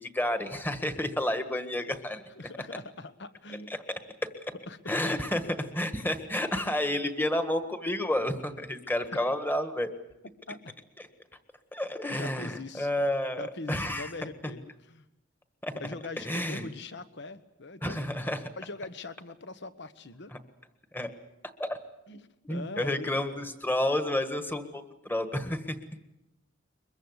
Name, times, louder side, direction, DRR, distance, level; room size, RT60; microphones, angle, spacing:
voice 1, 0.0-2.2 3.7-3.8 4.9-9.9 11.7-14.1 15.6-15.7 16.2-16.7 17.8-18.4 20.3-20.4 20.9-21.1 21.6-21.8 22.4-25.8, left 1 dB, 10° left, 8 dB, 1.6 m, -30 dB
voice 2, 2.4-3.7 4.7-5.0 10.5-10.7 12.1-12.9 13.4-15.0 15.8-18.0 18.6-20.3 22.1-23.4, left 3 dB, 60° left, 13 dB, 1.1 m, -42 dB
23.0 x 22.5 x 8.1 m, 0.95 s
head